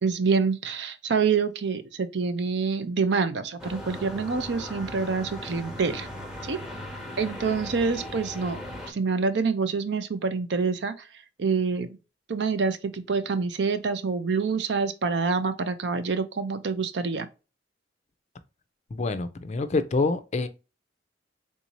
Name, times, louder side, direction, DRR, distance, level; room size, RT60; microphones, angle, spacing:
voice 1, 0.0-6.1 6.4-6.6 7.2-8.6 8.9-11.1 11.4-12.0 12.3-17.3, right 5 dB, 65° right, 0.5 m, -26 dB
sound 1, 3.6-8.9, left 1 dB, 5° right, 0.7 m, -38 dB
voice 2, 18.9-20.5, left 3 dB, 40° left, 0.4 m, -26 dB
3.6 x 2.7 x 2.9 m
head